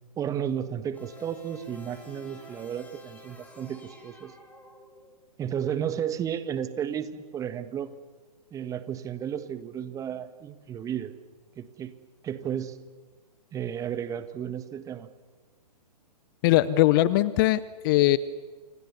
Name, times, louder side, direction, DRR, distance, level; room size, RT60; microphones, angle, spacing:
voice 1, 0.2-4.3 5.4-7.9 8.5-11.1 11.6-11.9 12.2-12.8 13.5-15.1, right 9 dB, 15° right, 12 dB, 1.5 m, -33 dB
sound 1, 0.9-5.3, left 1 dB, 5° left, 4.6 m, -49 dB
voice 2, 16.4-18.2, left 16 dB, 30° left, 18 dB, 0.8 m, -21 dB
30.0 x 26.5 x 7.1 m, 1.4 s
figure-of-eight pair, 125°, 21 cm